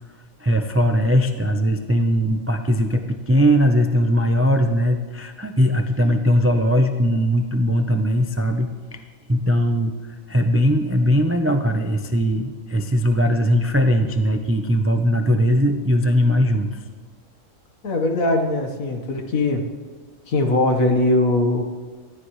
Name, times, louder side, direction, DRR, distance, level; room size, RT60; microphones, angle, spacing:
voice 1, 0.4-9.0 9.3-9.9 10.3-16.8, equal, 25° right, 6 dB, 0.3 m, -19 dB
voice 2, 17.8-19.6 20.3-21.6, left 2 dB, 75° left, 4 dB, 1.8 m, -20 dB
19.5 x 13.5 x 3.2 m, 1.4 s
omnidirectional pair, 1.4 m